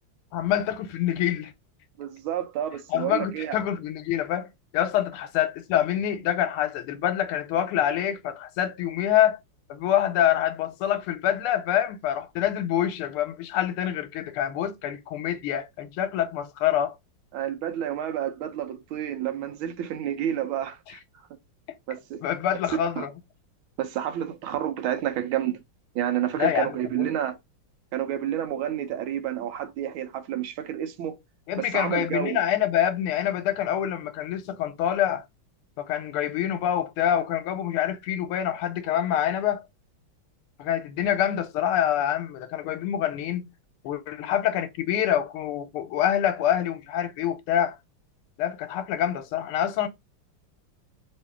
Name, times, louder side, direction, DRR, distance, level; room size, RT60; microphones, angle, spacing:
voice 1, 0.3-1.5 2.9-4.5 4.7-9.4 9.7-17.0 22.2-23.1 26.4-27.1 31.5-35.2 35.8-39.6 40.6-43.5 43.8-47.8 48.4-49.9, left 10 dB, 85° left, 1.5 m, -26 dB
voice 2, 2.0-3.6 17.3-21.0 21.9-22.2 23.0-23.1 23.8-25.6 25.9-27.4 27.9-31.2 31.6-32.4, right 11 dB, 75° right, 1.5 m, -29 dB
3.5 x 2.7 x 3.4 m
omnidirectional pair, 2.4 m